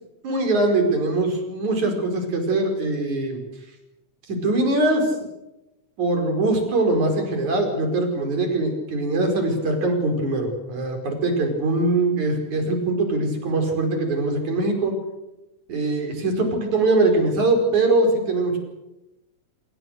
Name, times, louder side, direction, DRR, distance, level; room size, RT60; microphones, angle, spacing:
voice 1, 0.2-3.4 4.3-5.1 6.0-15.0 15.7-18.6, right 2 dB, 80° right, 4 dB, 6.5 m, -22 dB
28.0 x 21.5 x 6.7 m, 0.95 s
omnidirectional pair, 3.3 m